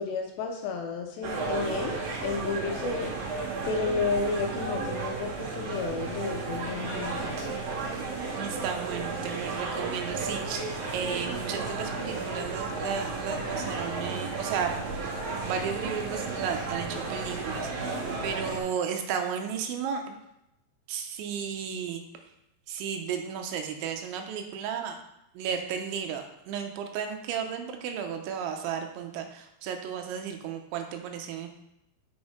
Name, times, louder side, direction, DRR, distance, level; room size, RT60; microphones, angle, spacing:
voice 1, 0.0-3.1 3.7-7.4, left 4 dB, 80° left, 3 dB, 2.7 m, -32 dB
sound 1, 1.2-18.6, right 3 dB, 60° right, 3.2 m, -33 dB
voice 2, 8.4-14.7 15.4-20.2 20.9-22.0 22.7-25.0 25.3-31.5, right 7 dB, 85° right, 4 dB, 3.0 m, -34 dB
6.3 x 6.1 x 5.0 m, 0.84 s
omnidirectional pair, 5.4 m